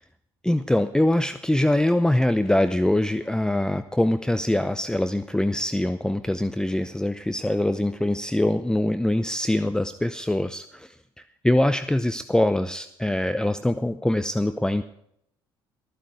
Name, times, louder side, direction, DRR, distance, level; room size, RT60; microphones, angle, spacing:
voice 1, 0.4-10.9 11.4-14.8, left 1 dB, 5° left, 11 dB, 0.7 m, -23 dB
14.5 x 14.0 x 4.7 m, 0.72 s
hypercardioid pair, 50°, 13 cm